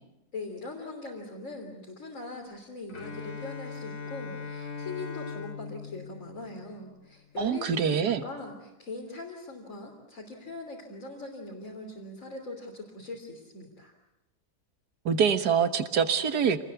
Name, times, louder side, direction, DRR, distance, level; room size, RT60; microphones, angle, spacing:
voice 1, 0.3-13.9, left 3 dB, 50° left, -2 dB, 3.8 m, -41 dB
Bowed string instrument, 2.9-7.0, left 5 dB, 70° left, 2.7 m, -40 dB
voice 2, 7.4-8.2 15.1-16.7, right 7 dB, 80° right, 9 dB, 2.0 m, -25 dB
27.5 x 20.5 x 8.2 m, 0.95 s
omnidirectional pair, 1.7 m